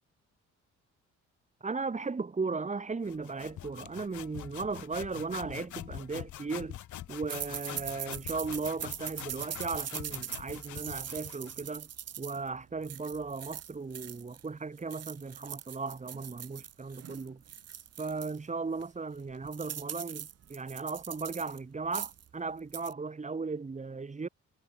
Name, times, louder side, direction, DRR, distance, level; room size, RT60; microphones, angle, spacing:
voice 1, 1.6-6.8 7.1-11.9 12.2-17.4 18.0-24.3, right 4 dB, 25° right, 1.9 m, -36 dB
sound 1, 3.0-11.6, left 12 dB, 75° left, 3.7 m, -45 dB
sound 2, 7.3-14.5 14.8-18.4 18.8-18.9 19.2-21.6 21.9-22.3 22.6-22.9, right 9 dB, 55° right, 2.0 m, -42 dB
cardioid pair, 90°, 30 cm